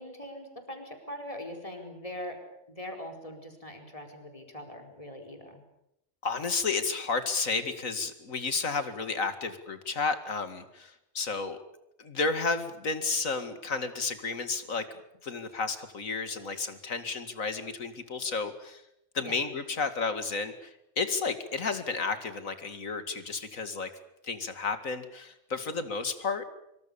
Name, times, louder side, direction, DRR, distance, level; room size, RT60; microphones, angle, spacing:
voice 1, 0.0-2.4 2.7-5.6 19.2-19.4, left 1 dB, 25° left, 3 dB, 4.7 m, -42 dB
voice 2, 6.2-11.6 12.0-14.8 15.2-18.8 19.1-23.9 24.2-26.4, left 4 dB, 75° left, 9 dB, 2.6 m, -32 dB
25.5 x 24.5 x 7.1 m, 0.81 s
omnidirectional pair, 1.4 m